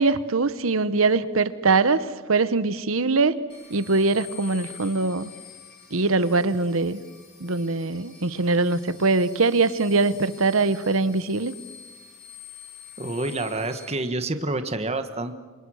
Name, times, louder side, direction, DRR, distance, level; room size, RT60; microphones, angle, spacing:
voice 1, 0.0-3.4 3.7-5.3 5.9-7.0 7.4-11.5, right 3 dB, 80° right, 14 dB, 1.1 m, -22 dB
sound 1, 3.5-13.9, left 7 dB, 50° left, 4.6 m, -47 dB
voice 2, 13.0-15.4, right 2 dB, 30° right, 8 dB, 1.4 m, -28 dB
28.5 x 26.5 x 6.4 m, 1.3 s
head